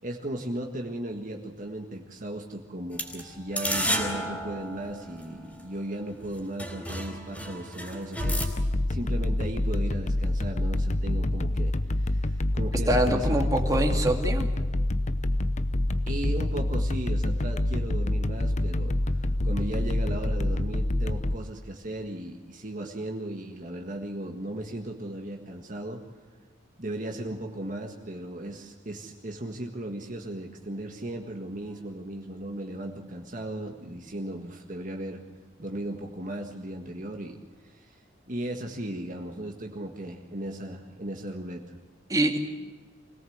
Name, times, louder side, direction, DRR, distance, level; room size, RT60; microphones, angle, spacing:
voice 1, 0.0-8.4 8.9-13.3 16.1-26.0 26.8-35.2 35.6-37.4 37.6-38.0 38.3-41.6, right 1 dB, 45° right, 2 dB, 1.7 m, -36 dB
sound 1, 2.9-5.6 6.2-6.3 6.6-8.5, equal, 5° left, 3.8 m, -32 dB
sound 2, 8.2-21.4, left 1 dB, 40° left, 0.8 m, -27 dB
voice 2, 12.9-14.5 42.1-42.4, right 1 dB, 20° right, 2 dB, 2.2 m, -24 dB
24.5 x 18.0 x 8.0 m, 1.3 s
head